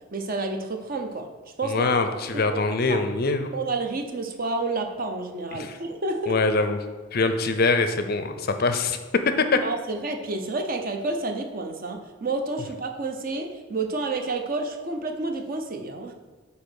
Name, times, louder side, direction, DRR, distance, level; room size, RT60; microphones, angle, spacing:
voice 1, 0.1-1.3 1.6-2.0 2.3-2.6 2.9-3.0 3.5-6.4 9.6-16.1, right 3 dB, 40° right, 4 dB, 0.7 m, -30 dB
voice 2, 1.6-3.5 5.5-5.7 6.3-6.8 7.1-9.0 9.4-9.6, left 3 dB, 45° left, 8 dB, 0.5 m, -23 dB
8.3 x 2.9 x 6.3 m, 1.4 s
head